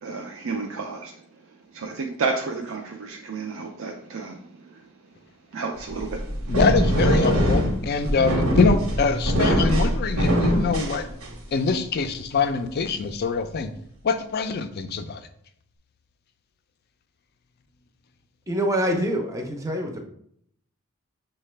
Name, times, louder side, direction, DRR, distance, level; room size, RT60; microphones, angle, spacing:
voice 1, 0.0-4.9 5.5-6.6, right 4 dB, 65° right, 0.4 m, -32 dB
sound 1, 5.9-11.6, equal, 85° right, 1.1 m, -22 dB
voice 2, 6.5-11.1 11.5-13.7 14.0-15.3, left 4 dB, 45° left, 0.4 m, -24 dB
voice 3, 18.5-20.0, equal, 15° right, 0.5 m, -25 dB
6.4 x 2.2 x 3.2 m
head